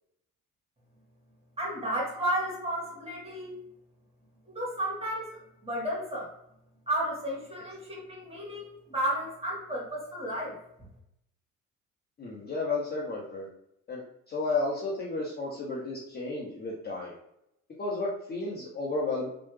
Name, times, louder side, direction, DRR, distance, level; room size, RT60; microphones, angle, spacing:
voice 1, 1.6-3.5 4.5-6.3 6.9-10.6, right 1 dB, 15° right, -3 dB, 1.4 m, -33 dB
voice 2, 12.2-13.5 13.9-17.2 17.8-19.3, left 3 dB, 25° left, -4 dB, 0.6 m, -32 dB
3.0 x 2.0 x 3.1 m, 0.80 s
figure-of-eight pair, 50°, 41 cm